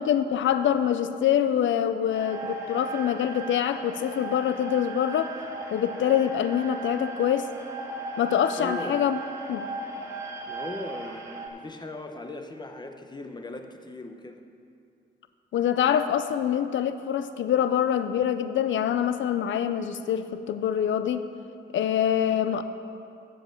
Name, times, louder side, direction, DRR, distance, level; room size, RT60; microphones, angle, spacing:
voice 1, 0.0-5.3 5.7-7.5 8.2-9.2 9.5-9.7 15.5-21.3 21.7-22.6, left 9 dB, 90° left, 11 dB, 0.5 m, -25 dB
sound 1, 2.1-11.5, right 3 dB, 15° right, 1.5 m, -37 dB
voice 2, 8.6-9.1 10.5-14.4, left 2 dB, 25° left, 6 dB, 0.8 m, -38 dB
7.8 x 7.8 x 7.5 m, 2.5 s
wide cardioid pair, 105°, 19 cm